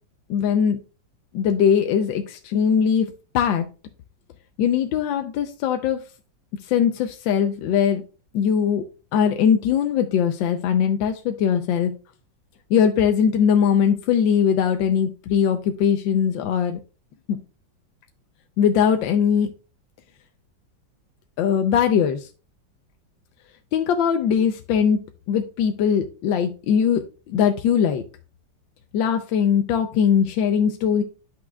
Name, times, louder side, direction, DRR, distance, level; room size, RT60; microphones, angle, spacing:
voice 1, 0.3-0.8 1.3-3.7 4.6-6.0 6.6-8.0 8.3-8.8 9.1-11.9 12.7-16.8 17.3-17.4 18.6-19.5 21.4-22.3 23.7-25.0 25.3-28.0 28.9-31.0, left 7 dB, 80° left, 6 dB, 1.4 m, -20 dB
10.5 x 6.1 x 2.3 m, 0.33 s
omnidirectional pair, 2.1 m